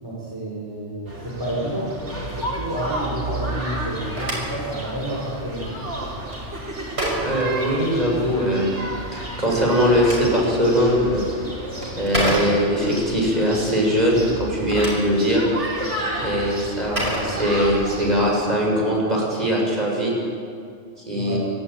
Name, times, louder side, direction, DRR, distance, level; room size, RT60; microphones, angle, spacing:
voice 1, 0.0-1.9 2.2-5.8 21.1-21.4, right 1 dB, 20° right, -6 dB, 4.9 m, -30 dB
sound 1, 1.1-18.1, right 1 dB, 85° right, 4.4 m, -32 dB
Telephone, 3.8-8.3 9.6-13.0 14.4-18.0, right 1 dB, 70° right, 7.0 m, -31 dB
voice 2, 7.2-8.7 9.1-11.2 12.0-15.4 16.2-20.1 21.1-21.4, equal, 35° right, -3 dB, 7.3 m, -21 dB
29.0 x 14.0 x 9.2 m, 2.2 s
omnidirectional pair, 1.2 m